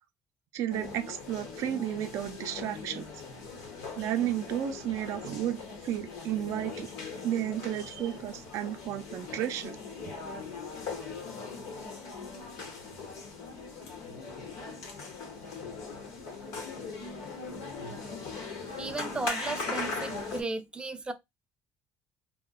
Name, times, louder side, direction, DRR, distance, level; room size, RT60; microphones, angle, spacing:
voice 1, 0.5-3.0 4.0-6.9 7.2-9.8, right 11 dB, 70° right, 0.4 m, -33 dB
sound 1, 0.7-20.4, left 4 dB, 85° left, 0.9 m, -40 dB
voice 2, 18.8-21.1, right 3 dB, 20° right, 0.5 m, -35 dB
2.9 x 2.1 x 2.2 m
cardioid pair, 95°, 5 cm